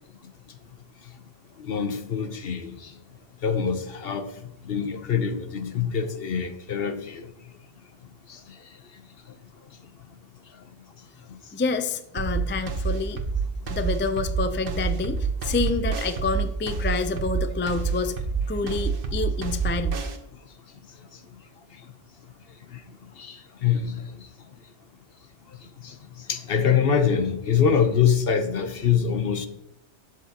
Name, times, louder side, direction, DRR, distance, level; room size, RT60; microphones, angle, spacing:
voice 1, 1.6-2.9 3.4-4.3 4.6-7.3 8.3-8.4 22.7-22.8 23.2-24.0 25.8-26.0 26.3-29.5, left 7 dB, 60° left, 8 dB, 1.0 m, -24 dB
voice 2, 11.5-13.2 13.7-18.2 18.5-20.0, left 4 dB, 20° left, 9 dB, 0.3 m, -28 dB
sound 1, 12.2-20.2, right 5 dB, 55° right, 1.2 m, -27 dB
11.5 x 7.6 x 2.9 m, 0.82 s
omnidirectional pair, 1.2 m